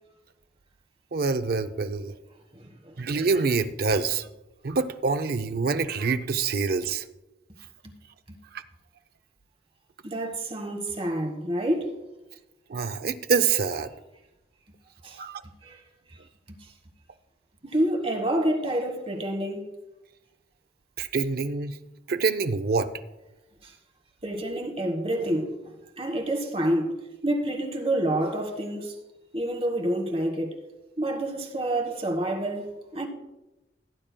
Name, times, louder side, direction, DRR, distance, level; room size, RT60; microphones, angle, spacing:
voice 1, 1.1-2.1 3.0-4.3 4.6-7.1 8.5-8.6 12.7-13.9 15.1-15.4 21.0-21.8 22.1-22.9, right 4 dB, 55° right, 0.5 m, -26 dB
voice 2, 2.5-3.0 7.8-7.9 10.0-11.9 15.0-15.2 15.6-15.8 17.6-19.6 23.6-23.7 24.2-25.5 26.0-26.9 27.2-28.9 29.3-30.5 31.0-33.1, right 1 dB, 35° right, 1.4 m, -28 dB
17.0 x 8.8 x 2.2 m
head